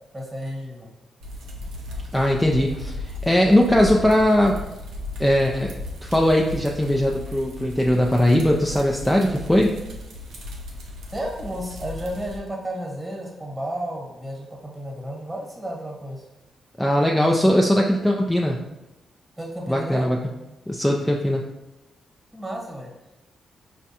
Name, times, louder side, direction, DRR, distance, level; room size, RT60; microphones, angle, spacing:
voice 1, 0.1-0.9 11.1-16.2 19.4-20.1 22.3-22.9, right 1 dB, 15° right, -2 dB, 1.2 m, -32 dB
sound 1, 1.2-12.4, left 2 dB, 80° right, 0.6 m, -36 dB
voice 2, 2.1-4.6 5.2-5.7 6.0-9.7 16.8-18.6 19.7-20.2 20.7-21.4, left 1 dB, 10° left, 0 dB, 0.4 m, -20 dB
4.8 x 2.3 x 2.8 m, 0.98 s
supercardioid pair, 55°, 0 cm